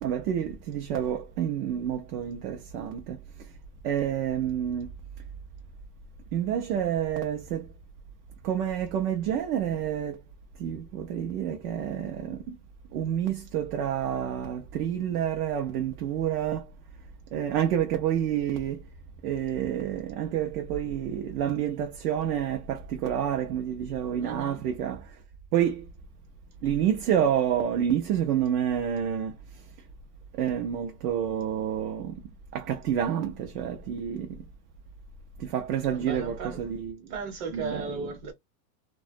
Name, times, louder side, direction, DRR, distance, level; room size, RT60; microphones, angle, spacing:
voice 1, 0.0-3.2 3.8-4.9 6.3-7.7 8.4-10.2 10.6-12.6 12.9-16.7 17.3-18.8 19.2-25.1 25.5-25.8 26.6-29.3 30.4-32.2 32.5-34.3 35.4-37.0 37.5-38.1, right 9 dB, 60° right, 0.6 m, -28 dB
voice 2, 24.2-24.6 35.9-36.6 37.1-38.3, right 4 dB, 45° right, 1.1 m, -35 dB
2.3 x 2.1 x 2.5 m
supercardioid pair, 160°, 50 cm